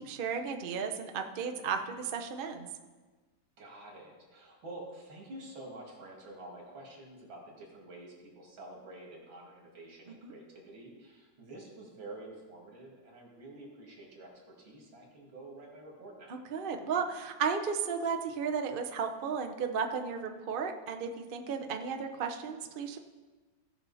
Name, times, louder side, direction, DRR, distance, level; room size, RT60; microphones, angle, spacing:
voice 1, 0.0-2.7 10.1-10.3 16.3-23.0, right 6 dB, 50° right, 4 dB, 0.6 m, -34 dB
voice 2, 3.6-16.4, right 2 dB, 80° right, -1 dB, 3.0 m, -48 dB
16.5 x 6.0 x 4.1 m, 1.3 s
omnidirectional pair, 2.1 m